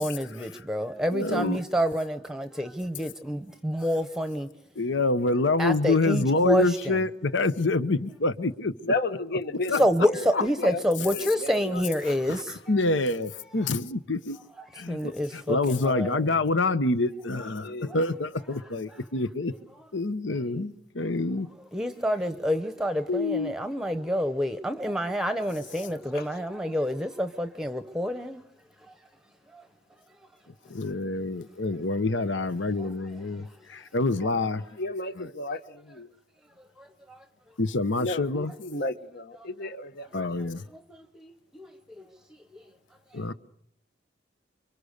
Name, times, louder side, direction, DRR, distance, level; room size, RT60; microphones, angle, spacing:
voice 1, 0.0-4.5 5.6-7.0 9.7-12.6 14.6-16.3 21.7-28.4 28.9-29.0 29.5-29.6 32.8-32.9 33.4-33.7 36.8-37.2 40.1-40.2 40.7-42.1 42.5-42.6, equal, 5° right, 0.9 m, -28 dB
voice 2, 1.1-1.6 4.8-8.7 9.7-9.8 10.3-10.4 12.0-12.4 12.7-14.4 14.7-19.5 19.9-21.5 23.1-23.5 30.7-34.6 35.2-35.3 37.6-38.5 40.1-40.6 43.1-43.3, left 2 dB, 75° left, 1.0 m, -27 dB
voice 3, 8.8-10.8 11.1-11.8 17.6-18.0 26.1-26.2 34.8-36.1 38.0-40.5, left 2 dB, 55° left, 1.2 m, -33 dB
28.5 x 24.5 x 6.6 m
head